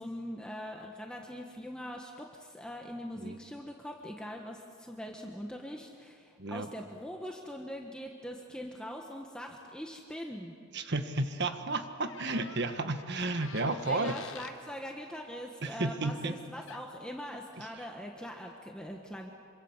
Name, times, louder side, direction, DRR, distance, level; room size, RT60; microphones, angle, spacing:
voice 1, 0.0-10.5 13.9-19.3, equal, 5° left, 1 dB, 1.5 m, -42 dB
voice 2, 10.7-14.1 15.6-16.3 17.6-17.7, right 2 dB, 55° right, 8 dB, 1.6 m, -32 dB
sound 1, 12.0-14.6 16.7-16.9, left 6 dB, 65° left, 1.0 m, -48 dB
26.5 x 25.0 x 7.4 m, 2.2 s
head